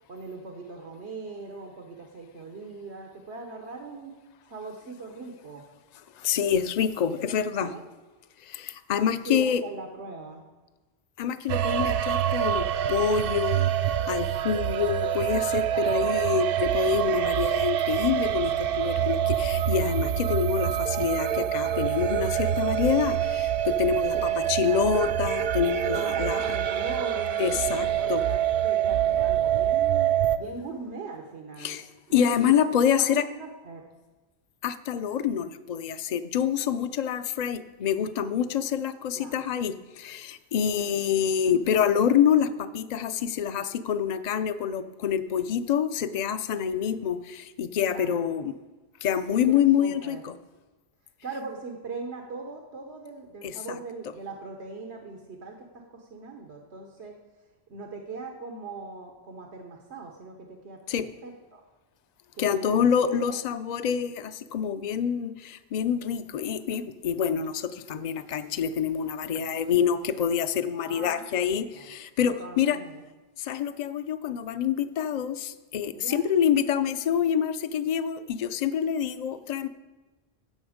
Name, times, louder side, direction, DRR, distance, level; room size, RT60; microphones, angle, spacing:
voice 1, 0.1-4.2 4.5-5.6 7.3-7.8 9.2-10.4 15.7-16.1 24.1-24.9 25.9-31.8 32.1-32.4 33.0-33.8 39.1-39.4 40.8-41.0 47.9-48.3 49.3-50.2 51.2-57.2 57.7-61.6 62.3-63.4 70.9-71.9 72.2-73.0 75.9-76.3, right 4 dB, 90° right, 2 dB, 1.4 m, -40 dB
voice 2, 6.2-7.7 8.5-9.6 11.2-13.7 14.1-26.4 27.4-28.2 31.6-31.9 32.1-33.2 34.6-48.5 49.0-50.3 53.4-53.8 60.9-61.1 62.4-72.8 73.4-79.7, left 8 dB, 50° left, 12 dB, 0.6 m, -26 dB
sound 1, 11.5-30.4, right 10 dB, 65° right, 0.7 m, -26 dB
16.5 x 7.0 x 5.0 m, 1.2 s
omnidirectional pair, 1.1 m